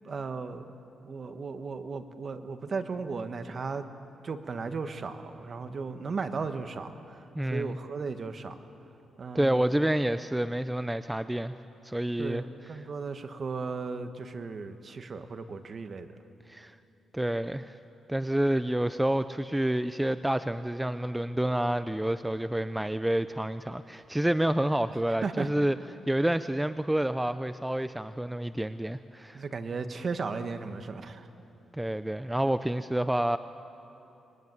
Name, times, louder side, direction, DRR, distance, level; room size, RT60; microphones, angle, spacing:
voice 1, 0.0-0.7 1.0-3.9 4.2-7.2 7.5-8.6 9.2-9.7 12.2-16.1 25.2-25.5 29.3-31.3, right 4 dB, 45° right, 9 dB, 1.5 m, -35 dB
voice 2, 7.4-7.8 9.3-11.6 11.8-12.4 12.7-12.8 16.5-16.8 17.1-17.7 18.1-25.8 26.1-29.4 31.8-33.4, right 1 dB, 5° right, 12 dB, 0.5 m, -28 dB
24.0 x 21.5 x 9.5 m, 3.0 s
cardioid pair, 110°, 0 cm